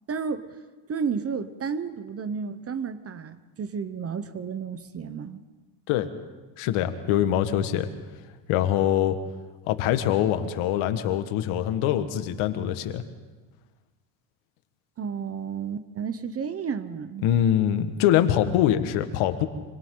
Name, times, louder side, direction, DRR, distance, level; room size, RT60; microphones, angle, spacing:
voice 1, 0.1-0.4 0.9-5.4 15.0-17.3, right 6 dB, 30° right, 0.8 m, -32 dB
voice 2, 6.6-7.9 8.5-9.2 9.7-13.0 17.2-19.5, left 11 dB, 75° left, 1.7 m, -23 dB
26.0 x 26.0 x 3.9 m
cardioid pair, 125°, 50 cm